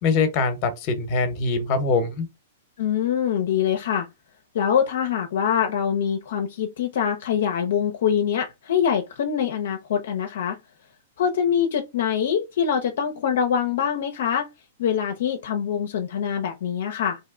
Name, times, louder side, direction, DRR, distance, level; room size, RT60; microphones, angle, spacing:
voice 1, 0.0-2.3, left 4 dB, 40° left, 0.9 m, -23 dB
voice 2, 2.8-4.1 4.5-10.6 11.2-14.5 14.8-17.2, left 8 dB, 70° left, 0.5 m, -24 dB
2.7 x 2.1 x 3.6 m
hypercardioid pair, 135°, 0 cm